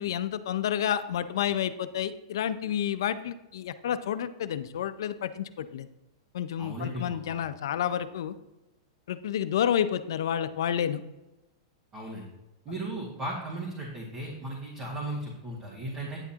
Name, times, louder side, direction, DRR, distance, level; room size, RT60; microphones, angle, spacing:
voice 1, 0.0-5.9 6.3-8.3 9.1-11.0, left 9 dB, 75° left, 12 dB, 0.6 m, -30 dB
voice 2, 6.6-7.4 11.9-12.2 12.7-16.2, right 1 dB, 30° right, -4 dB, 2.0 m, -36 dB
9.8 x 8.1 x 2.9 m, 0.99 s
hypercardioid pair, 140°, 2 cm